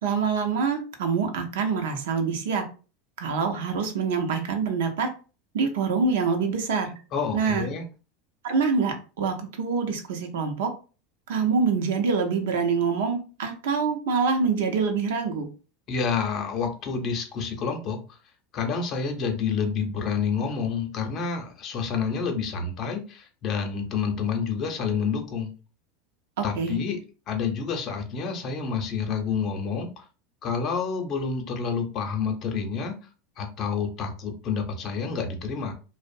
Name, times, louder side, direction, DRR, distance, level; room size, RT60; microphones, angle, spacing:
voice 1, 0.0-2.6 3.2-5.1 5.5-6.9 7.3-7.7 8.4-10.7 11.3-15.5 26.4-26.8, right 5 dB, 75° right, 4 dB, 0.6 m, -25 dB
voice 2, 7.1-7.8 15.9-18.2 18.5-25.5 26.4-27.0 27.3-30.0 30.4-32.9 33.4-35.7, left 5 dB, 45° left, 5 dB, 0.6 m, -28 dB
2.5 x 2.0 x 2.5 m, 0.35 s
hypercardioid pair, 90°, 0 cm